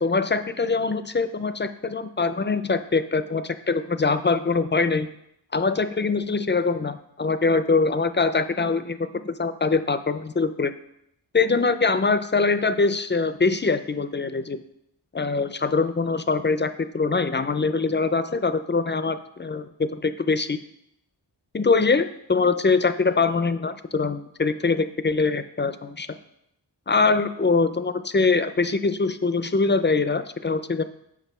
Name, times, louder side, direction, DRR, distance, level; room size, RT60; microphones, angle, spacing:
voice 1, 0.0-5.1 5.5-10.7 11.3-14.6 15.1-20.6 21.5-26.1 26.9-30.8, left 4 dB, 25° left, 12 dB, 0.3 m, -23 dB
6.1 x 4.7 x 5.4 m, 0.77 s
wide cardioid pair, 60°, 44 cm